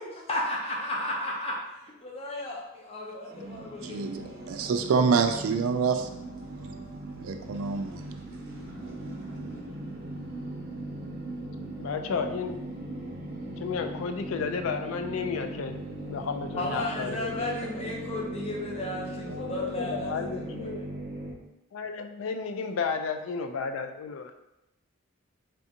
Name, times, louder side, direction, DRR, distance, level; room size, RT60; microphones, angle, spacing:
voice 1, 0.0-1.5 2.0-4.0 16.6-20.9, left 1 dB, 30° left, -3 dB, 0.7 m, -34 dB
sound 1, 3.3-21.3, right 2 dB, 50° right, 0.7 m, -39 dB
voice 2, 3.8-4.2 4.5-6.1 7.2-8.0, right 5 dB, 80° right, 7 dB, 0.3 m, -26 dB
voice 3, 11.8-12.6 13.6-15.8 16.1-17.5 19.3-20.8 21.7-24.3, left 5 dB, 70° left, 7 dB, 0.3 m, -32 dB
3.4 x 2.5 x 2.7 m, 0.89 s
head